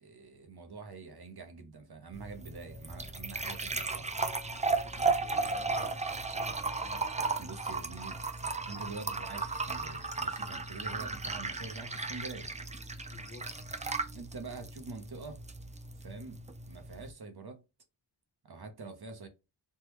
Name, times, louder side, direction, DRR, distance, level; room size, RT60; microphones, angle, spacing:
voice 1, 0.0-4.1 7.4-8.2 8.6-12.5 14.1-15.4 16.0-16.4 16.7-17.6 18.4-19.3, right 3 dB, 50° right, 0.7 m, -45 dB
sound 1, 2.1-17.1, right 3 dB, 15° right, 0.3 m, -35 dB
voice 2, 4.8-7.1 10.9-11.2 13.1-13.4, left 4 dB, 25° left, 0.7 m, -53 dB
3.4 x 2.2 x 2.9 m
wide cardioid pair, 85°, 49 cm